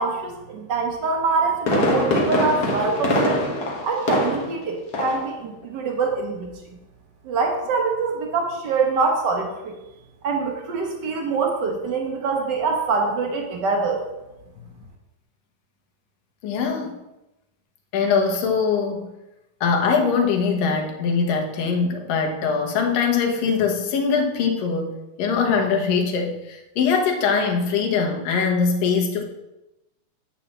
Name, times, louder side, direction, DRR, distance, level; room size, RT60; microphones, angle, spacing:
voice 1, 0.0-3.4 3.8-6.5 7.2-9.7 10.2-14.0, right 4 dB, 60° right, 1.1 m, -24 dB
Fireworks, 1.2-4.6 4.9-5.3 5.6-5.7, left 1 dB, 60° left, 1.0 m, -23 dB
voice 2, 16.4-17.0 17.9-19.1 19.6-24.9 25.2-29.2, left 5 dB, 85° left, 2.8 m, -22 dB
9.7 x 4.4 x 7.3 m
omnidirectional pair, 3.8 m